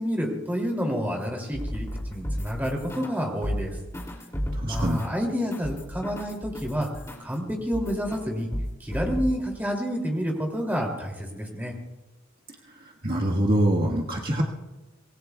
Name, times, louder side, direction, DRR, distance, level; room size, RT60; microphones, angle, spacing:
voice 1, 0.0-3.7 4.7-6.9 7.2-8.5 8.8-11.7, equal, 10° right, 0 dB, 2.8 m, -29 dB
sound 1, 1.5-3.2 3.4-7.4 7.7-8.2 8.5-9.4, equal, 15° left, 2.7 m, -33 dB
voice 2, 4.6-5.0 13.0-14.4, right 1 dB, 45° right, -2 dB, 1.6 m, -24 dB
25.5 x 19.5 x 2.3 m, 1.1 s
head